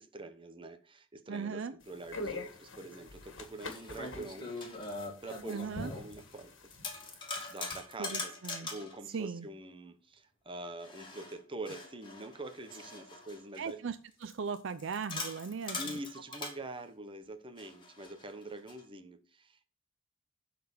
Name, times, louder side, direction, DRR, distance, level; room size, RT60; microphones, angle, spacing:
voice 1, 0.0-4.5 5.2-6.7 7.5-13.8 15.7-19.7, right 2 dB, 25° right, 1.0 m, -45 dB
voice 2, 1.3-1.7 5.5-5.9 8.0-8.7 9.1-9.5 13.6-16.0, right 5 dB, 70° right, 0.5 m, -38 dB
sound 1, 1.8-7.8, left 2 dB, 70° left, 1.8 m, -45 dB
sound 2, 2.5-2.6 3.3-6.4 6.7-9.0 10.8-13.7 14.2-16.6 17.6-18.8, left 3 dB, 25° left, 2.5 m, -42 dB
11.5 x 4.3 x 6.9 m
head